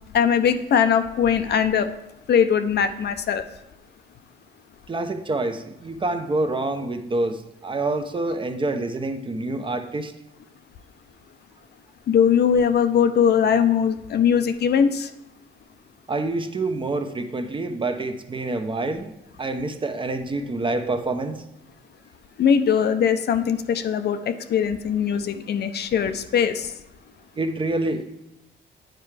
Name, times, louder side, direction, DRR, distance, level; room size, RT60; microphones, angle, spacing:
voice 1, 0.1-1.9 2.3-3.4 12.1-15.1 22.4-26.7, left 7 dB, 55° left, 9 dB, 0.6 m, -20 dB
voice 2, 4.9-10.1 16.1-19.1 19.4-21.4 27.4-28.0, right 2 dB, 25° right, 7 dB, 0.6 m, -27 dB
9.0 x 4.6 x 3.3 m, 0.89 s
cardioid pair, 90°, 20 cm